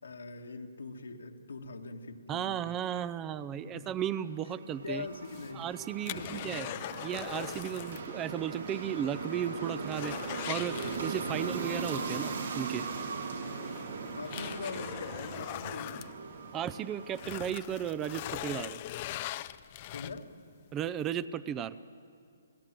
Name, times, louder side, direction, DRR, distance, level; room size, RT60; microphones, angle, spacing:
voice 1, 0.0-2.6 2.9-3.1 3.5-3.9 4.7-5.6 6.1-6.7 11.2-11.5 14.2-16.1 19.9-20.3, left 4 dB, 90° left, 3 dB, 2.0 m, -43 dB
voice 2, 2.3-5.1 5.5-6.7 7.0-12.8 16.5-18.8 20.7-21.8, right 9 dB, 20° right, 16 dB, 0.5 m, -35 dB
sound 1, 4.1-18.4, right 4 dB, 75° right, 3.2 m, -39 dB
sound 2, 5.1-8.1 8.4-8.5 9.0-9.1 9.4-11.5 12.9-13.0 13.6-16.7 17.1-20.4 20.9-21.0, left 15 dB, 35° left, 0.5 m, -41 dB
29.0 x 16.5 x 7.7 m, 2.3 s
hypercardioid pair, 155°, 0 cm